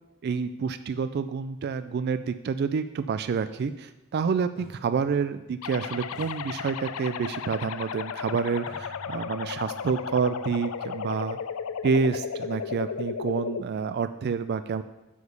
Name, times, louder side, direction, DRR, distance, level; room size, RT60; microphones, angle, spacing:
voice 1, 0.2-11.4 11.8-14.8, right 5 dB, 50° right, 12 dB, 0.3 m, -28 dB
sound 1, 3.6-3.7 4.6-5.7 6.1-7.4 8.7-12.6, equal, 5° right, 1.9 m, -52 dB
sound 2, 5.6-13.6, left 6 dB, 90° left, 0.4 m, -34 dB
8.0 x 5.0 x 6.9 m, 1.0 s
head